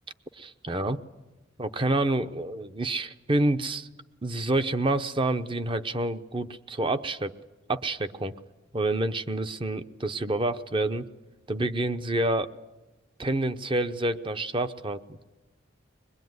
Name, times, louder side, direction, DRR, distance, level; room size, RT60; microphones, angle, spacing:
voice 1, 0.4-1.0 1.6-3.9 4.2-7.3 7.7-8.3 8.7-11.0 11.5-12.5 13.2-15.2, right 2 dB, 25° right, 11 dB, 0.8 m, -28 dB
22.0 x 21.5 x 9.4 m, 1.1 s
head